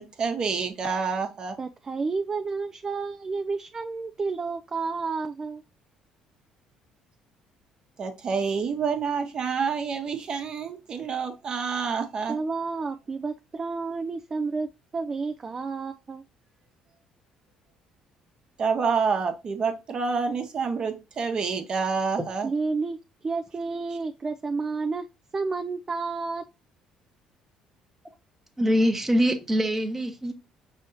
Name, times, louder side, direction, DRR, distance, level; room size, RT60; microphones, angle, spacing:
voice 1, 0.0-1.6 8.0-12.4 18.6-22.5, right 5 dB, 45° right, 1.1 m, -28 dB
voice 2, 1.6-5.6 12.3-16.2 22.4-25.1 25.3-26.4, right 4 dB, 30° right, 0.4 m, -30 dB
voice 3, 28.6-30.3, equal, 15° right, 0.9 m, -23 dB
5.4 x 3.4 x 2.6 m
cardioid pair, 95°, 2 cm